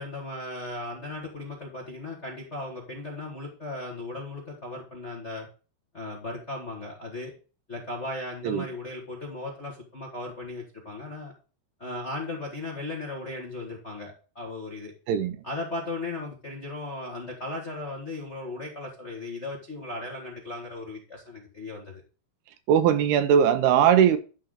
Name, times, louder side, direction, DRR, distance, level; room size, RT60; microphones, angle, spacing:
voice 1, 0.0-5.5 5.9-7.3 7.7-11.3 11.8-14.9 15.4-22.0, left 2 dB, 60° left, 0.7 m, -36 dB
voice 2, 22.7-24.2, right 8 dB, 75° right, 2.6 m, -20 dB
11.5 x 3.9 x 6.5 m
omnidirectional pair, 4.8 m